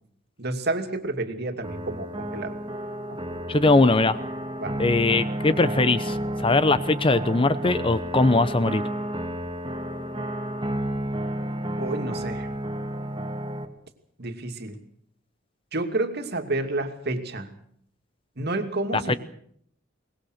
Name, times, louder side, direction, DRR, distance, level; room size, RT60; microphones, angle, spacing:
voice 1, 0.4-2.5 3.1-3.2 4.6-4.8 11.8-12.5 14.2-14.8 15.7-17.5 18.4-19.2, right 2 dB, 55° right, 6 dB, 2.5 m, -29 dB
sound 1, 1.6-13.6, right 1 dB, 25° right, 1.9 m, -31 dB
voice 2, 3.5-4.2 4.8-8.8 18.9-19.1, left 2 dB, 25° left, 14 dB, 0.8 m, -21 dB
23.0 x 20.0 x 6.6 m, 0.66 s
head